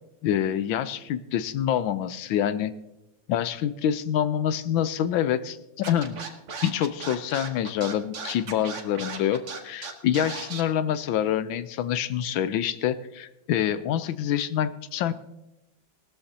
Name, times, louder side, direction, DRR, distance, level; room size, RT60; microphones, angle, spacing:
voice 1, 0.2-2.7 3.3-6.2 6.6-15.1, left 10 dB, 80° left, 13 dB, 1.4 m, -26 dB
Scratching (performance technique), 5.8-10.6, right 5 dB, 45° right, 1.2 m, -36 dB
18.5 x 13.0 x 2.8 m, 0.91 s
omnidirectional pair, 2.2 m